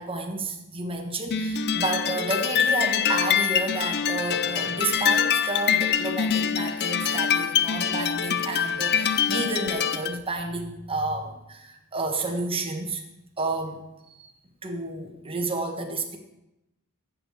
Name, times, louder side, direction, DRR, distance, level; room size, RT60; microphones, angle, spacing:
voice 1, 0.0-13.0 13.4-13.8 14.1-14.3 14.6-16.2, right 2 dB, 25° right, 3 dB, 1.4 m, -30 dB
sound 1, 1.3-10.2, left 8 dB, 50° left, 0.5 m, -25 dB
7.7 x 7.7 x 8.3 m, 0.92 s
head